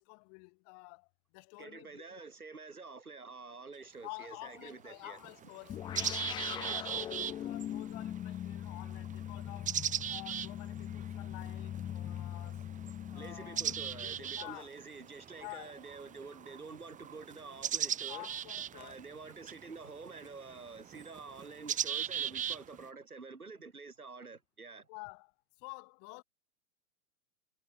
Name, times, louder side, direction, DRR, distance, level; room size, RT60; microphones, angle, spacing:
voice 1, 0.0-2.3 4.0-5.8 6.2-9.8 10.1-12.7 13.1-13.7 14.0-14.7 15.4-15.8 18.1-19.0 24.9-25.3 25.6-26.2, left 40 dB or more, 35° left, 8.0 m, -50 dB
voice 2, 1.6-5.2 6.5-6.8 13.1-18.3 18.7-24.9, right 4 dB, 85° right, 4.0 m, -48 dB
sound 1, 3.7-3.8 4.7-4.8 5.2-22.9, right 9 dB, 15° right, 2.5 m, -39 dB
sound 2, 5.7-14.5, left 11 dB, 10° left, 0.6 m, -41 dB
figure-of-eight pair, 110°, 43 cm